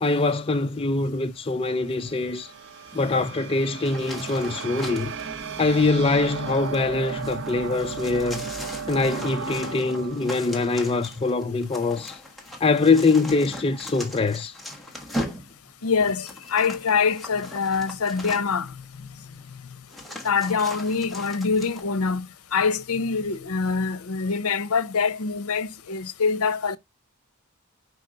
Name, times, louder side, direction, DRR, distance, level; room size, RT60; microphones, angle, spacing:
voice 1, 0.0-2.5 2.9-5.2 5.6-8.5 8.9-12.2 12.6-14.5, left 3 dB, 25° left, 0.5 m, -23 dB
sound 1, 1.4-11.8, right 6 dB, 60° right, 0.7 m, -36 dB
sound 2, 3.8-5.3 6.3-18.7 19.4-19.5 19.9-21.8, equal, ahead, 1.3 m, -39 dB
voice 2, 15.8-18.8 20.2-26.8, left 5 dB, 85° left, 0.7 m, -25 dB
5.3 x 4.8 x 3.8 m
head